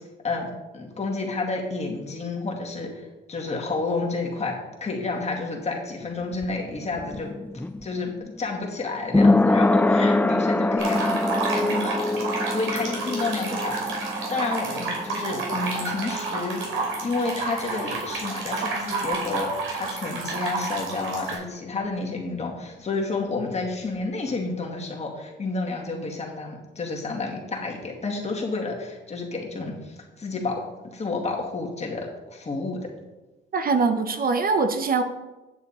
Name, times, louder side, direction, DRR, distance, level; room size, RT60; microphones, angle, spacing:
voice 1, 0.2-7.3 7.8-8.1 8.4-11.2 11.5-32.9, left 3 dB, 35° left, -1 dB, 2.2 m, -30 dB
sound 1, 6.0-17.6 17.8-17.9, left 2 dB, 10° left, 0.3 m, -25 dB
sound 2, 10.8-21.4, right 3 dB, 80° right, 3.0 m, -30 dB
voice 2, 33.5-35.0, right 4 dB, 45° right, 8 dB, 0.8 m, -22 dB
9.2 x 7.1 x 4.2 m, 1.1 s
cardioid pair, 90°, 20 cm